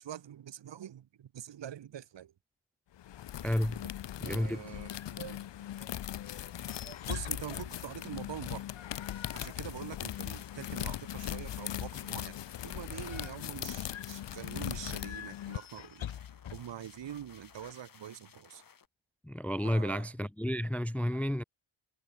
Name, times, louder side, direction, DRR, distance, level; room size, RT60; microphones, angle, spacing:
voice 1, 0.0-2.3 4.2-5.9 6.8-8.7 9.3-16.1 16.5-18.6 19.6-20.3 21.1-21.2, right 10 dB, 65° right, 2.0 m, -45 dB
sound 1, 3.0-15.6, left 12 dB, 65° left, 1.1 m, -39 dB
voice 2, 3.4-3.8 4.2-4.6 19.2-21.4, equal, 5° left, 0.5 m, -31 dB
sound 2, 4.7-17.7, left 10 dB, 90° left, 5.4 m, -48 dB
sound 3, 9.0-18.9, left 7 dB, 45° left, 8.0 m, -58 dB
wide cardioid pair, 170°, 46 cm